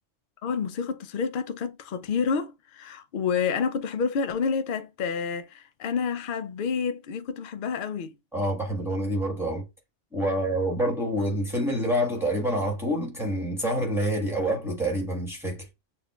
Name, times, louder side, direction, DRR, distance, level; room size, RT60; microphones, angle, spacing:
voice 1, 0.4-8.1, left 6 dB, 55° left, 0.6 m, -29 dB
voice 2, 8.3-9.6 10.1-15.6, right 1 dB, ahead, 1.5 m, -27 dB
6.9 x 2.5 x 2.4 m
omnidirectional pair, 1.3 m